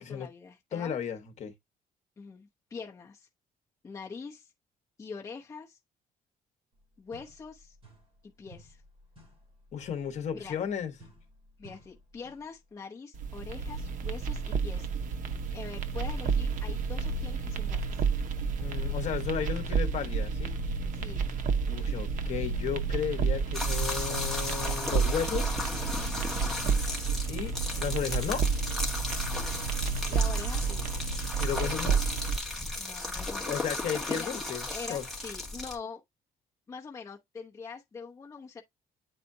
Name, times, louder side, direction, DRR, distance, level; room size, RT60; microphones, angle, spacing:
voice 1, 0.0-0.9 2.2-3.3 3.8-4.5 5.0-5.8 7.0-7.8 8.2-8.8 10.4-10.6 11.6-14.9 15.5-18.0 20.9-21.2 26.6-27.1 30.1-30.9 32.8-33.6 34.0-34.3 34.7-36.0 36.7-38.6, left 5 dB, 20° left, 0.9 m, -44 dB
voice 2, 0.7-1.5 9.7-10.9 18.6-20.5 21.7-25.5 27.3-28.4 31.4-32.0 33.4-35.0, left 8 dB, 45° left, 1.3 m, -34 dB
sound 1, 6.7-6.8 7.1-8.2 8.5-12.6, equal, 35° right, 3.3 m, -56 dB
sound 2, 13.1-32.4, right 5 dB, 55° right, 0.8 m, -30 dB
sound 3, 23.5-35.8, left 2 dB, ahead, 1.7 m, -35 dB
9.0 x 4.1 x 2.7 m
cardioid pair, 170°, 16 cm